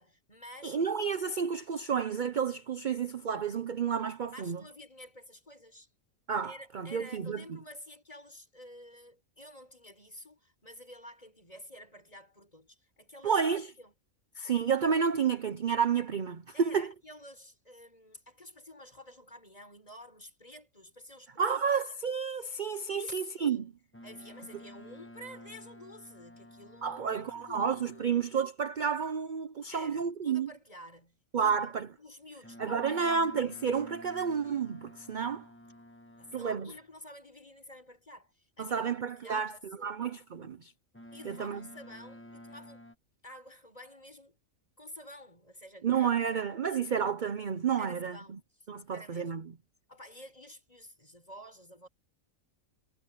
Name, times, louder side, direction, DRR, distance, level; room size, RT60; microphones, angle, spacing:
voice 1, 0.0-0.8 4.3-5.9 6.4-13.4 13.8-13.9 16.5-21.6 22.9-23.7 24.0-28.1 29.7-31.7 32.0-33.3 36.2-39.9 41.1-42.9 43.2-44.4 44.8-46.5 47.8-48.7 48.9-49.4 49.9-51.9, left 1 dB, 25° left, 5.6 m, -50 dB
voice 2, 0.6-4.6 6.3-7.6 13.2-13.7 14.4-16.9 21.4-23.7 26.8-30.5 31.3-31.9 32.6-35.5 36.3-36.7 38.6-39.5 39.8-40.7 41.2-41.6 45.8-48.4 48.7-49.4, right 6 dB, 45° right, 0.7 m, -30 dB
Boat Water vehicle, 23.9-28.5 32.4-37.0 40.9-42.9, equal, 10° left, 1.1 m, -52 dB
omnidirectional pair, 1.4 m